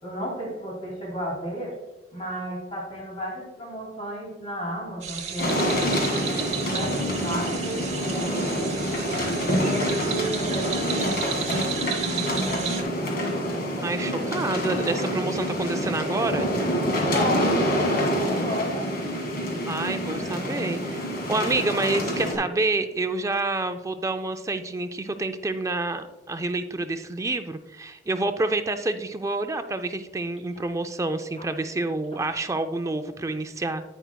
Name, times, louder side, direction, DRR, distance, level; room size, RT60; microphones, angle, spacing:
voice 1, 0.0-1.8 2.1-5.8 6.7-8.8 9.4-13.0 17.1-19.0 31.4-31.5, equal, 35° left, -2 dB, 2.3 m, -33 dB
sound 1, 5.0-12.8, right 7 dB, 35° right, 1.0 m, -34 dB
sound 2, 5.4-22.3, equal, 55° left, 2.0 m, -27 dB
voice 2, 13.8-16.5 19.7-33.8, right 2 dB, 15° right, 8 dB, 0.4 m, -28 dB
9.9 x 9.2 x 2.2 m, 1.1 s
head